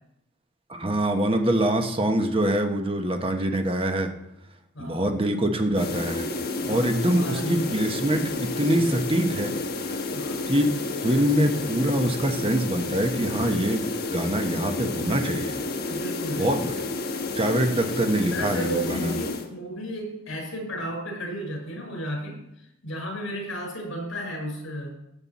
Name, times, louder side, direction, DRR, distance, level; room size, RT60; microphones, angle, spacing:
voice 1, 0.7-4.1 4.8-6.3 6.7-9.5 9.8-10.0 10.5-10.7 11.0-13.8 14.1-15.6 16.4-16.7 17.4-19.1, right 1 dB, 25° right, 5 dB, 1.1 m, -24 dB
voice 2, 4.7-5.1 6.6-6.9 7.2-7.7 10.1-10.5 15.9-16.5 17.6-18.0 18.3-25.0, equal, 70° left, 1 dB, 4.7 m, -34 dB
sound 1, 5.7-19.5, left 3 dB, 50° left, 1.3 m, -31 dB
16.5 x 7.9 x 4.2 m, 0.85 s
head